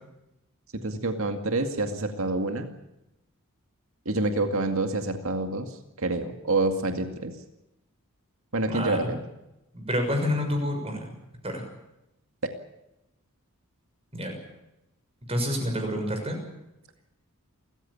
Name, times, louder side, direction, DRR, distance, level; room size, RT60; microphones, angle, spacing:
voice 1, 0.8-2.7 4.1-7.3 8.5-9.2, right 2 dB, 65° right, 6 dB, 2.2 m, -27 dB
voice 2, 8.6-9.2 9.7-11.1 11.4-11.6 14.1-14.3 15.3-16.4, equal, 25° right, 4 dB, 6.4 m, -28 dB
29.0 x 15.0 x 8.6 m, 0.90 s
head